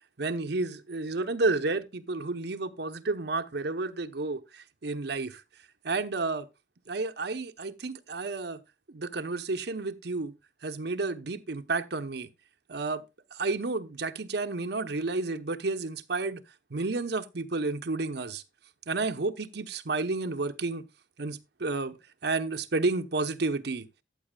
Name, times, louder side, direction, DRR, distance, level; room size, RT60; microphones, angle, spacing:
voice 1, 0.2-5.4 5.8-6.5 6.9-8.6 8.9-10.3 10.6-12.3 12.7-13.0 13.3-16.4 16.7-18.4 18.9-20.8 21.2-22.0 22.2-23.9, right 3 dB, 65° right, 0.8 m, -31 dB
14.0 x 8.2 x 2.3 m
head